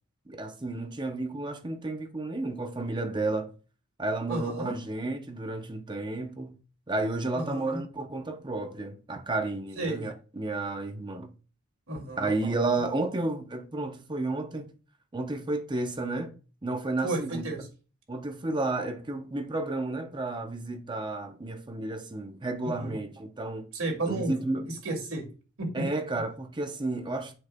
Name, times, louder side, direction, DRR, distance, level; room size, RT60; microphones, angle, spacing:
voice 1, 0.3-3.5 4.0-6.6 6.9-11.3 12.2-14.7 15.1-16.3 16.6-17.4 18.1-23.7 24.1-24.7 25.7-27.3, right 2 dB, 20° right, 0.7 m, -32 dB
voice 2, 4.3-4.7 7.3-7.8 9.8-10.0 11.9-12.3 17.0-17.7 22.6-23.0 23.7-24.3 24.8-25.2 25.6-25.8, right 2 dB, 70° right, 2.4 m, -32 dB
7.8 x 6.3 x 2.3 m
head